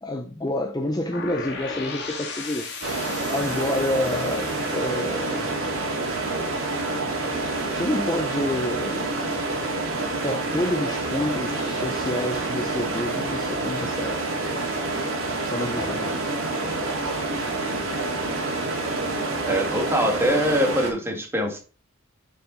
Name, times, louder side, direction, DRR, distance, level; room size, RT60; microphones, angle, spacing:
voice 1, 0.0-2.8 3.1-4.5 4.7-5.5 7.7-9.4 10.2-14.2 15.5-16.4 20.3-20.4, left 1 dB, 20° left, 0.6 m, -29 dB
sound 1, 1.1-7.0, left 4 dB, 55° left, 1.8 m, -37 dB
sound 2, 2.8-20.9, right 2 dB, 70° right, 2.6 m, -27 dB
voice 2, 19.5-21.6, equal, 10° right, 1.8 m, -23 dB
6.8 x 5.9 x 4.1 m
head